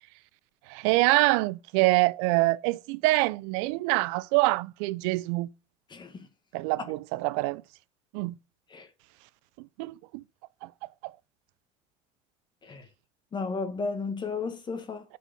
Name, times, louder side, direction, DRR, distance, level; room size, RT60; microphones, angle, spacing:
voice 1, 0.7-5.5 6.5-7.6 8.1-8.3 9.6-10.2 10.6-10.7 11.0-11.1, right 21 dB, 85° right, 0.5 m, -25 dB
voice 2, 5.9-6.3 8.7-8.9 12.6-12.8 13.3-15.0, left 4 dB, 30° left, 1.3 m, -33 dB
7.0 x 4.7 x 5.4 m
supercardioid pair, 105°, 15 cm